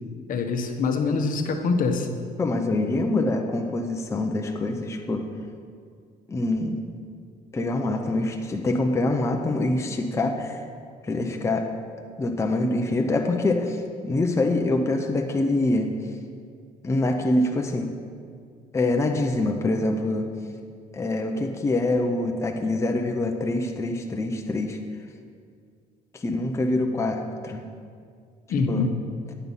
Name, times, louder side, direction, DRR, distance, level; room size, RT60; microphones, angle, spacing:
voice 1, 0.3-2.1 28.5-28.9, left 4 dB, 55° left, 4 dB, 0.9 m, -24 dB
voice 2, 2.4-5.3 6.3-6.8 7.5-10.6 11.0-11.7 12.2-15.9 16.8-17.9 18.7-20.3 20.9-24.8 26.1-27.6 28.7-28.9, left 2 dB, 15° left, 3 dB, 0.6 m, -25 dB
9.5 x 5.7 x 5.5 m, 2.2 s
cardioid pair, 110°, 17 cm